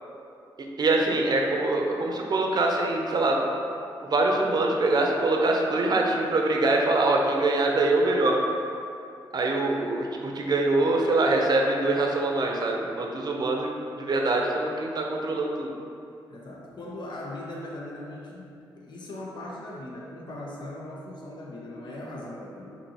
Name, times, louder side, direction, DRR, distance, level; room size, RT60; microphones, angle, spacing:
voice 1, 0.8-3.4 4.0-8.4 9.3-15.7, right 2 dB, 50° right, 0 dB, 0.7 m, -24 dB
voice 2, 16.3-22.7, left 1 dB, 55° left, -3 dB, 0.9 m, -39 dB
6.0 x 2.9 x 2.9 m, 2.6 s
supercardioid pair, 55°, 9 cm